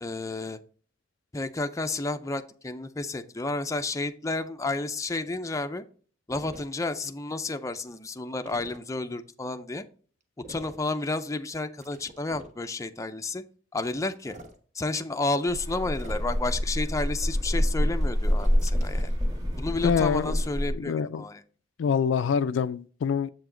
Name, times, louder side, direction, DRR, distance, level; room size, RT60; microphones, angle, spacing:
voice 1, 0.0-0.6 1.3-5.8 6.3-9.8 10.5-13.4 13.7-14.4 14.7-19.1 19.6-21.4, left 2 dB, 15° left, 0.5 m, -31 dB
alien sound, 6.3-6.7 8.5-8.8 10.4-10.8 11.8-12.6 14.1-14.6 15.9-16.5 18.4-19.2, right 1 dB, 40° right, 1.0 m, -46 dB
sound 1, 15.5-20.7, equal, 20° right, 2.2 m, -27 dB
voice 2, 19.8-20.4 20.7-21.2 21.8-23.3, left 6 dB, 80° left, 0.3 m, -25 dB
7.5 x 4.9 x 3.8 m
head